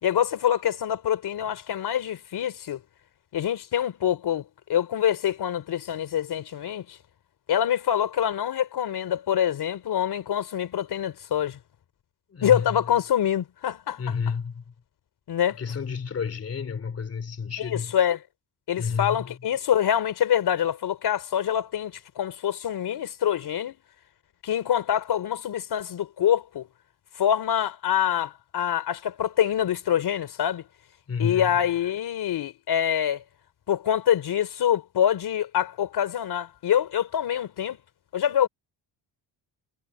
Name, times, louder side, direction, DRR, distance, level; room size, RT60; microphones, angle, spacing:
voice 1, 0.0-2.8 3.3-4.4 4.7-7.0 7.5-11.6 12.4-14.2 15.3-15.6 17.6-18.2 18.7-23.8 24.4-26.7 27.2-30.7 31.2-33.2 33.7-37.8 38.1-38.5, left 10 dB, 55° left, 3.6 m, -25 dB
voice 2, 12.3-12.7 14.0-14.6 15.6-17.9 18.8-19.3 31.1-31.5, left 6 dB, 30° left, 3.3 m, -30 dB
cardioid pair, 165°, 46 cm